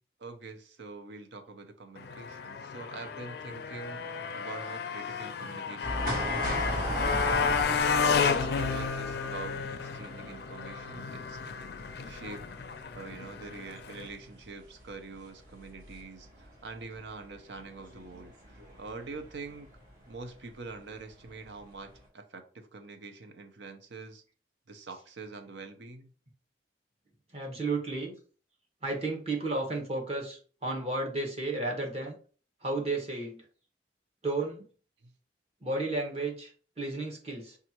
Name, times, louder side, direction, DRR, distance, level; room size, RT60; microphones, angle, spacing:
voice 1, 0.2-11.4 12.0-12.4 12.9-19.7 20.1-24.2 24.7-26.1 35.0-35.1, right 3 dB, 90° right, 0.7 m, -45 dB
Motorcycle, 2.0-14.1, left 5 dB, 65° left, 0.4 m, -32 dB
sound 1, 5.8-19.9 20.1-20.2 21.3-21.6 21.9-22.0, equal, 50° right, 1.6 m, -38 dB
voice 2, 27.3-28.1 28.8-32.2 32.6-33.4 34.2-34.6 35.6-37.6, right 2 dB, 35° right, 1.2 m, -33 dB
5.3 x 2.5 x 2.9 m
head